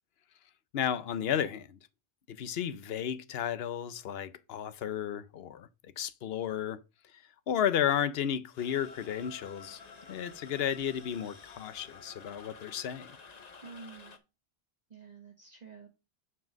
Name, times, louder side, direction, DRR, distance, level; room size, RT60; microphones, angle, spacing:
voice 1, 0.7-1.8 2.3-6.8 7.1-9.8 10.1-13.1, left 9 dB, 70° left, 0.9 m, -33 dB
sound 1, 8.6-14.2, left 5 dB, 40° left, 1.0 m, -51 dB
voice 2, 13.6-14.2 14.9-15.9, right 5 dB, 40° right, 1.4 m, -49 dB
5.9 x 4.9 x 6.3 m
omnidirectional pair, 1.1 m